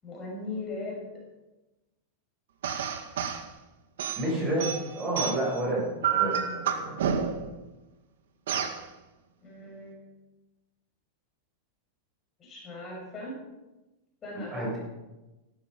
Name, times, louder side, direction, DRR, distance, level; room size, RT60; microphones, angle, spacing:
voice 1, 0.0-1.2 9.4-10.1 12.4-13.4 14.2-14.6, left 2 dB, 25° left, -3 dB, 6.2 m, -38 dB
sound 1, 2.6-3.4 4.0-5.6 6.0-7.5 8.5-8.8, right 8 dB, 80° right, 2.1 m, -29 dB
voice 2, 4.2-7.0 14.5-14.8, right 1 dB, 20° right, -3 dB, 7.3 m, -30 dB
16.0 x 13.5 x 5.4 m, 1.1 s
supercardioid pair, 140°, 0 cm